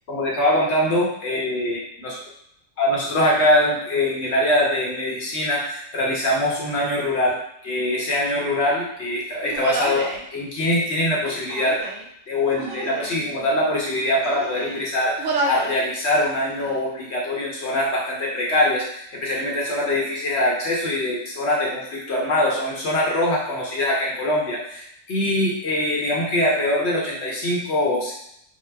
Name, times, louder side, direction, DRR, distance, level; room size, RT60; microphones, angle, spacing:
voice 1, 0.1-2.1 2.8-7.4 7.6-11.8 12.3-28.1, left 1 dB, 60° left, -4 dB, 1.0 m, -23 dB
Human voice, 9.4-10.2 11.2-12.1 12.5-13.2 13.8-14.8 15.2-15.8 16.1-16.8, right 2 dB, 75° right, 0.9 m, -30 dB
2.8 x 2.1 x 3.2 m, 0.72 s
omnidirectional pair, 1.4 m